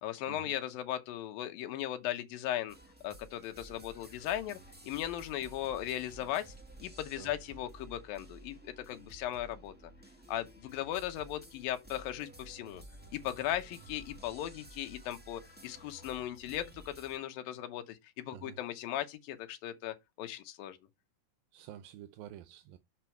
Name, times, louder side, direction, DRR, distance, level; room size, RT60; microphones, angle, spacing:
voice 1, 0.0-2.8 3.0-4.6 4.8-6.5 6.8-9.7 10.3-12.8 13.1-20.8, left 12 dB, 75° left, 2.7 m, -37 dB
sound 1, 2.7-17.2, right 1 dB, 10° right, 0.4 m, -53 dB
voice 2, 21.5-22.8, right 11 dB, 85° right, 2.4 m, -49 dB
6.2 x 6.0 x 4.4 m
omnidirectional pair, 4.2 m